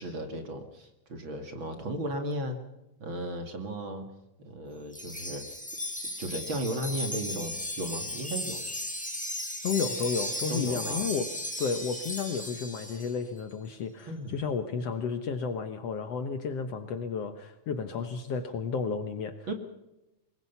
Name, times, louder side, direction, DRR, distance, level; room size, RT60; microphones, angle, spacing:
voice 1, 0.0-2.6 3.0-4.1 4.4-5.6 6.2-8.6 10.5-11.1 14.1-14.4 19.5-19.6, right 1 dB, 40° right, 6 dB, 2.6 m, -35 dB
Wind chime, 4.9-13.1, left 1 dB, 5° left, 2.3 m, -36 dB
voice 2, 9.6-11.3 11.6-19.5, left 5 dB, 60° left, 9 dB, 2.0 m, -32 dB
24.5 x 21.5 x 5.6 m, 0.94 s
omnidirectional pair, 3.7 m